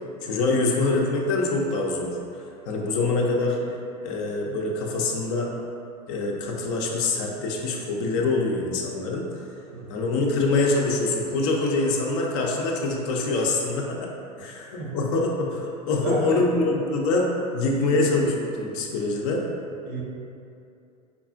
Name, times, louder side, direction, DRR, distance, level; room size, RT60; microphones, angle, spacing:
voice 1, 0.2-2.2 2.7-3.6 4.0-5.5 6.1-9.3 9.9-14.1 14.4-19.4, left 3 dB, 50° left, -1 dB, 0.6 m, -25 dB
voice 2, 14.4-15.0 15.9-16.7 17.7-18.0 18.8-19.1 19.8-20.0, right 2 dB, 60° right, -3 dB, 0.9 m, -33 dB
5.2 x 2.4 x 2.4 m, 2.6 s
figure-of-eight pair, 80°, 21 cm